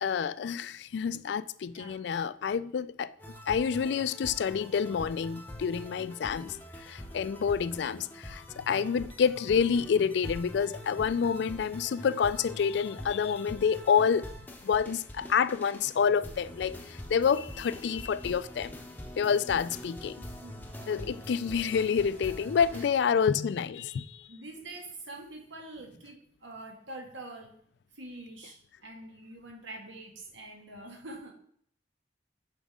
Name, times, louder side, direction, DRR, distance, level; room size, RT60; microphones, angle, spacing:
voice 1, 0.0-3.1 3.5-14.3 14.6-18.7 19.2-20.3 20.9-24.3, left 6 dB, 65° left, 0.3 m, -28 dB
voice 2, 1.7-2.0 20.4-21.2 22.2-22.9 24.3-27.5 27.9-31.3, right 2 dB, 80° right, 1.6 m, -46 dB
sound 1, 3.2-22.9, left 1 dB, 10° left, 0.7 m, -44 dB
7.3 x 5.1 x 3.6 m
head